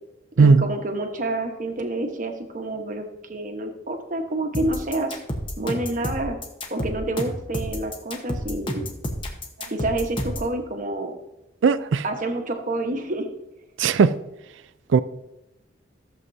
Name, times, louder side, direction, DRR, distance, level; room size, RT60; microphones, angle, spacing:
voice 1, 0.4-5.2 5.6-6.4 6.7-8.9 9.7-11.1 12.0-13.3, right 2 dB, 40° right, 1.1 m, -28 dB
sound 1, 4.5-10.5, equal, 25° left, 1.1 m, -30 dB
voice 2, 11.6-12.0 13.8-14.1 14.9-15.0, right 5 dB, 65° right, 0.4 m, -17 dB
14.5 x 7.4 x 2.7 m
head